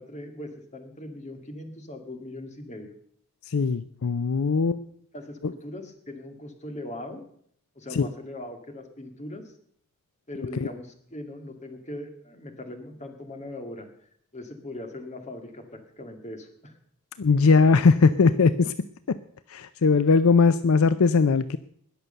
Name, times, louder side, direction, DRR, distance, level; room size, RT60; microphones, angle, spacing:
voice 1, 0.0-2.9 5.1-7.2 7.8-9.4 10.3-13.9 14.3-16.8, left 1 dB, 30° left, 5 dB, 2.0 m, -40 dB
voice 2, 3.5-4.8 5.4-5.5 7.9-8.1 17.2-18.7 19.1-19.2 19.5-21.6, left 4 dB, 70° left, 14 dB, 0.5 m, -20 dB
20.0 x 6.7 x 6.8 m, 0.65 s
head